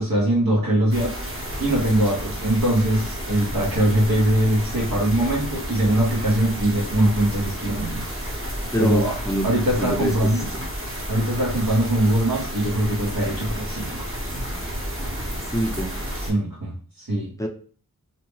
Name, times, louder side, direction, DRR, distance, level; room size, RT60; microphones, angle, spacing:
voice 1, 0.0-8.5 8.8-9.1 9.4-10.5 11.1-14.1 16.2-17.3, right 1 dB, 75° right, -4 dB, 1.0 m, -22 dB
sound 1, 0.9-16.3, equal, 40° right, 0.9 m, -31 dB
voice 2, 8.7-9.5 9.8-10.6 15.5-16.0 17.4-17.5, equal, 10° left, 2 dB, 0.6 m, -26 dB
2.7 x 2.1 x 3.1 m, 0.43 s
wide cardioid pair, 40°, 35 cm